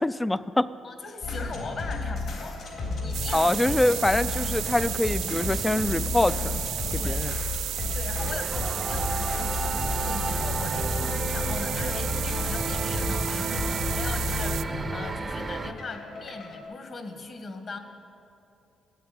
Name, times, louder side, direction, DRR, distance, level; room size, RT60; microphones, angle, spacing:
voice 1, 0.0-0.7 3.3-6.6 6.9-7.3, left 1 dB, 15° left, 16 dB, 0.4 m, -24 dB
voice 2, 0.8-4.2 4.6-4.8 6.9-7.3 7.7-17.8, left 3 dB, 50° left, 6 dB, 1.7 m, -40 dB
sound 1, 1.2-16.6, left 3 dB, 70° left, 3.5 m, -32 dB
sound 2, 3.1-14.6, right 11 dB, 80° right, 0.3 m, -33 dB
sound 3, 8.2-15.7, right 3 dB, 30° right, 0.7 m, -33 dB
13.5 x 8.7 x 9.2 m, 2.7 s
cardioid pair, 90°, 0 cm